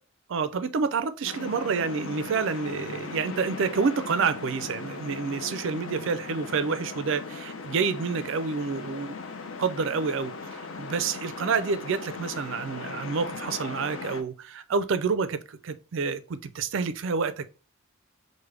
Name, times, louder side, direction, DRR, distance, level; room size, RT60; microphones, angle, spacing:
voice 1, 0.3-9.1 9.6-17.5, right 5 dB, 55° right, 0.4 m, -28 dB
sound 1, 1.2-14.2, left 4 dB, 60° left, 0.5 m, -38 dB
4.8 x 2.1 x 3.3 m
head